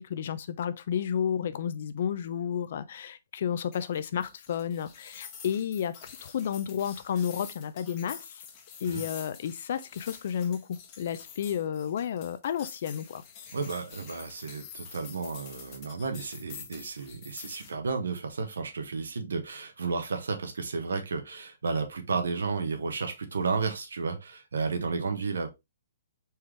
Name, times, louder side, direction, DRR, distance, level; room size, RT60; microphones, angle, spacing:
voice 1, 0.0-8.4 8.8-13.2, left 8 dB, 60° left, 0.6 m, -32 dB
sound 1, 3.7-17.7, left 7 dB, 35° left, 1.1 m, -47 dB
voice 2, 13.5-25.5, right 4 dB, 80° right, 1.3 m, -32 dB
4.4 x 3.6 x 3.2 m
hypercardioid pair, 140°, 0 cm